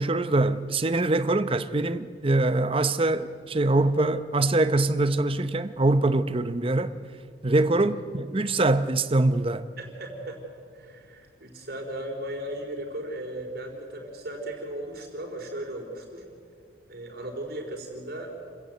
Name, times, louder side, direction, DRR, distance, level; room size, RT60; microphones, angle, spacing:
voice 1, 0.0-6.9 7.4-9.7, right 2 dB, 30° right, 0.8 m, -23 dB
voice 2, 9.8-10.4 10.7-16.2 16.9-18.3, right 1 dB, 55° right, 4.2 m, -36 dB
28.0 x 16.0 x 8.1 m
head